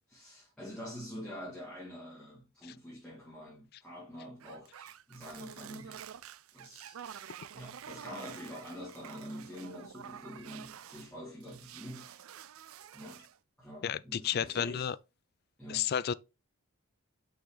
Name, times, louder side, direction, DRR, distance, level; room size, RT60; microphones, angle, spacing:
voice 1, 0.1-6.1 6.5-7.0 7.5-12.2 12.9-13.2 13.6-14.9 15.6-15.9, equal, 5° left, 2.4 m, -46 dB
sound 1, 4.4-11.1 11.4-13.4, right 9 dB, 75° right, 0.5 m, -49 dB
voice 2, 13.8-15.0 15.7-16.1, left 8 dB, 45° left, 0.3 m, -31 dB
6.2 x 5.8 x 3.3 m
head